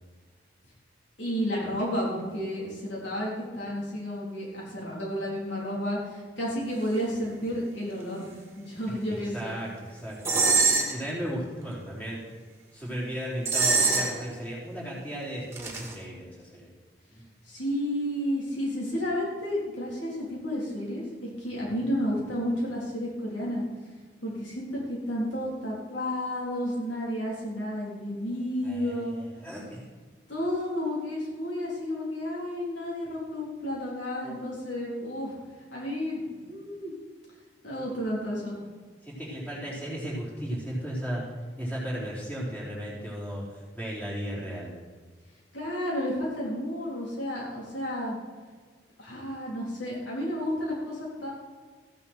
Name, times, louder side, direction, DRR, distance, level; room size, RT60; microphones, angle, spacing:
voice 1, 1.2-8.3 8.6-9.6 17.5-21.0 21.4-23.7 24.2-29.2 30.3-35.3 35.7-36.9 37.6-38.6 45.5-48.2 49.0-51.3, equal, 80° left, -4 dB, 3.8 m, -31 dB
voice 2, 8.9-10.2 10.9-12.2 12.7-16.7 17.1-17.2 21.8-21.9 28.6-29.9 39.0-41.2 41.6-43.4 43.7-44.8, equal, 10° left, -6 dB, 4.0 m, -35 dB
sound 1, 10.3-11.0 13.5-14.3 15.5-15.9, right 4 dB, 15° right, 2.3 m, -23 dB
15.0 x 10.5 x 4.6 m, 1.5 s
head